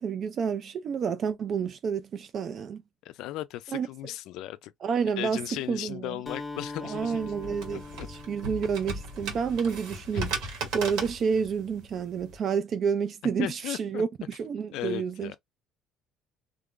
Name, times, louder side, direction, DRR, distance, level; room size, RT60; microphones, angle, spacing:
voice 1, 0.0-2.8 3.7-3.9 4.8-5.4 5.7-6.2 6.8-15.3, right 6 dB, 40° right, 0.3 m, -29 dB
voice 2, 3.0-4.7 5.2-7.3 7.7-8.1 10.1-10.3 13.4-14.0 14.7-15.4, left 15 dB, 70° left, 0.3 m, -36 dB
Acoustic guitar, 6.3-10.1, left 3 dB, 15° left, 0.6 m, -43 dB
sound 1, 7.0-12.4, right 2 dB, 70° right, 1.9 m, -37 dB
3.2 x 2.4 x 3.6 m
cardioid pair, 140°, 0 cm